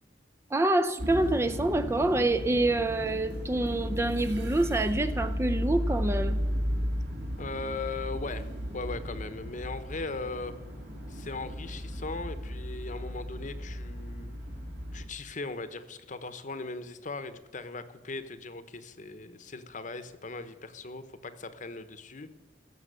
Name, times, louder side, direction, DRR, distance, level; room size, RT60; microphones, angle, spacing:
voice 1, 0.5-6.4, right 2 dB, 15° right, 9 dB, 0.5 m, -26 dB
sound 1, 1.0-15.1, equal, 70° right, 3.5 m, -34 dB
voice 2, 7.4-8.5 8.7-10.5 11.1-14.3 14.9-22.4, left 3 dB, 45° left, 12 dB, 1.0 m, -39 dB
16.0 x 7.1 x 6.8 m, 1.2 s
head